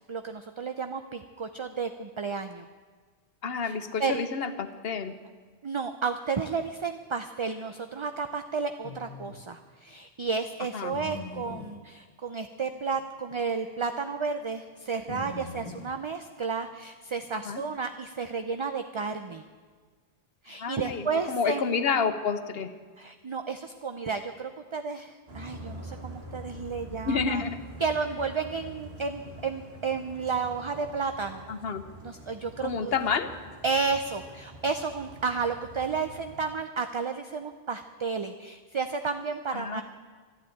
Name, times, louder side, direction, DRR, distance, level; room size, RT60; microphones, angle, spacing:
voice 1, 0.1-2.7 3.6-4.2 5.6-19.4 20.4-21.7 23.0-27.4 27.8-31.4 32.0-32.9 33.6-39.8, right 5 dB, 35° right, 8 dB, 0.6 m, -32 dB
voice 2, 3.4-5.1 10.7-10.9 17.3-17.6 20.6-22.7 27.0-27.6 31.5-31.8 32.6-33.3 39.5-39.8, left 5 dB, 70° left, 11 dB, 1.2 m, -29 dB
sound 1, 8.8-9.4 10.9-11.8 12.9-13.0 13.3-13.4 15.1-16.0 17.2-17.5, left 4 dB, 35° left, 1.2 m, -41 dB
sound 2, 25.3-36.4, right 1 dB, 75° right, 2.6 m, -45 dB
12.5 x 11.5 x 9.2 m, 1.5 s
omnidirectional pair, 1.1 m